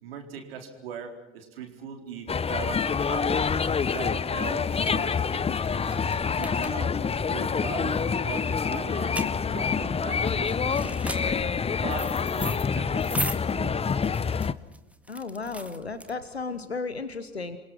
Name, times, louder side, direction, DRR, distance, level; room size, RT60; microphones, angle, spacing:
voice 1, 0.0-3.5 3.9-5.9 6.3-9.2 9.5-13.9, right 6 dB, 70° right, 4 dB, 4.3 m, -39 dB
sound 1, 2.2-16.6, right 1 dB, 5° right, 2.0 m, -40 dB
sound 2, 2.3-14.5, left 6 dB, 20° left, 0.9 m, -27 dB
voice 2, 15.1-17.6, left 4 dB, 85° left, 12 dB, 1.2 m, -34 dB
29.0 x 24.0 x 6.0 m, 1.0 s
figure-of-eight pair, 65°, 31 cm